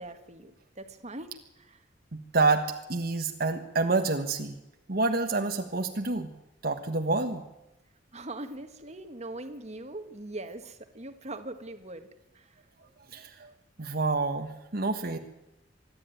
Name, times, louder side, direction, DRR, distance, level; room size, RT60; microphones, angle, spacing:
voice 1, 0.0-1.8 8.1-12.1 12.3-12.6, right 2 dB, 40° right, 7 dB, 1.6 m, -41 dB
voice 2, 2.1-4.6 4.9-6.3 6.6-7.4 13.1-13.5 13.8-15.2, right 3 dB, 55° right, 4 dB, 1.4 m, -28 dB
25.0 x 11.0 x 9.3 m, 0.90 s
head